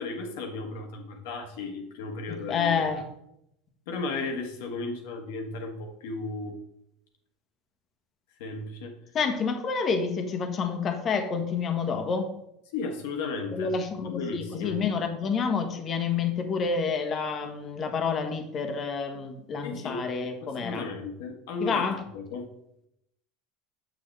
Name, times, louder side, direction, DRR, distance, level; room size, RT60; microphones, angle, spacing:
voice 1, 0.0-2.8 3.9-6.6 8.4-9.0 12.7-13.7 14.0-14.8 19.6-20.0 20.4-21.9 22.1-22.5, left 3 dB, 70° left, 3 dB, 1.4 m, -35 dB
voice 2, 2.5-3.0 9.1-12.3 13.5-20.8 21.6-22.0, left 5 dB, 40° left, 6 dB, 1.3 m, -28 dB
7.3 x 6.5 x 3.3 m, 0.79 s
hypercardioid pair, 85°, 0 cm